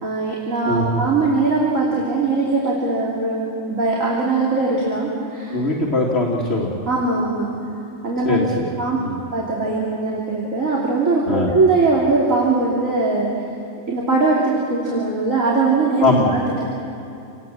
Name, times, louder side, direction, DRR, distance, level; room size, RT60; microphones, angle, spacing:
voice 1, 0.0-5.6 6.9-7.5 8.0-8.4 8.8-9.0 9.3-13.3 13.9-16.7, right 3 dB, 85° right, -5 dB, 3.4 m, -20 dB
voice 2, 0.7-1.0 5.5-6.7 8.3-8.5 9.0-9.2 11.3-11.5 16.0-16.3, left 2 dB, 55° left, -2 dB, 2.4 m, -20 dB
28.5 x 18.5 x 7.6 m, 2.7 s
omnidirectional pair, 1.3 m